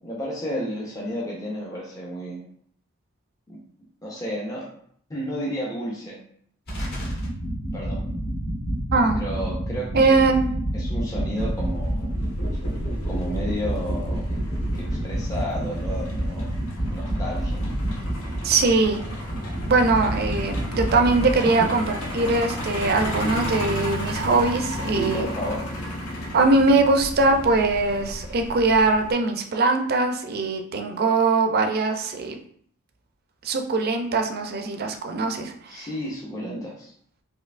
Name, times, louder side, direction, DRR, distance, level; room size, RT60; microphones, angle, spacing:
voice 1, 0.0-2.4 3.5-3.6 4.0-4.7 5.1-6.2 7.7-8.1 9.1-10.3 10.7-12.1 13.0-14.2 14.7-16.6 16.9-17.6 21.5-21.7 24.9-25.6 35.7-36.9, equal, 15° left, -4 dB, 0.5 m, -32 dB
sound 1, 6.7-21.3, right 1 dB, 50° left, 1.2 m, -28 dB
voice 2, 9.9-10.5 18.4-19.3 19.6-21.8 22.1-25.3 26.3-32.4 33.4-35.9, right 3 dB, 45° right, 4 dB, 0.4 m, -21 dB
Truck, 11.4-29.1, left 1 dB, 75° left, 0.8 m, -33 dB
4.3 x 2.7 x 2.5 m, 0.64 s
head